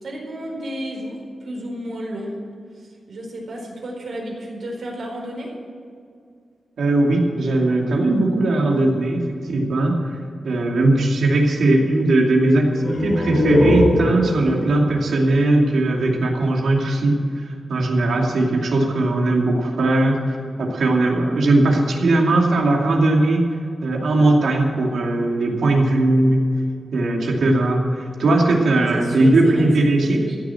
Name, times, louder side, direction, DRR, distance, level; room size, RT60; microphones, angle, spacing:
voice 1, 0.0-2.3 2.7-5.5 28.9-30.4, right 1 dB, 65° right, -1 dB, 4.5 m, -32 dB
voice 2, 6.8-9.2 9.5-10.0 10.4-17.2 17.7-23.4 23.8-26.4 26.9-30.2, right 2 dB, 85° right, 0 dB, 2.6 m, -18 dB
sound 1, 12.8-16.3, left 1 dB, 60° left, 2.9 m, -22 dB
15.0 x 7.2 x 9.0 m, 2.2 s
wide cardioid pair, 160°, 0 cm